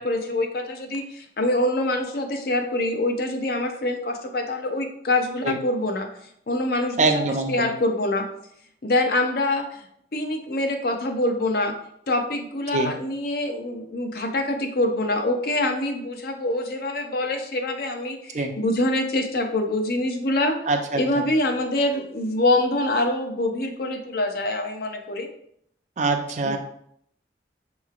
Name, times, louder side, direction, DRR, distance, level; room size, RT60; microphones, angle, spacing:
voice 1, 0.0-6.1 6.5-7.1 7.5-8.3 8.8-9.8 10.1-11.7 12.1-20.6 20.9-25.3 26.4-26.6, left 1 dB, 55° left, 5 dB, 0.6 m, -25 dB
voice 2, 7.0-7.7 12.7-12.9 18.3-18.5 20.7-21.3 26.0-26.6, right 3 dB, 40° right, 4 dB, 0.5 m, -24 dB
6.4 x 3.0 x 2.4 m, 0.71 s
head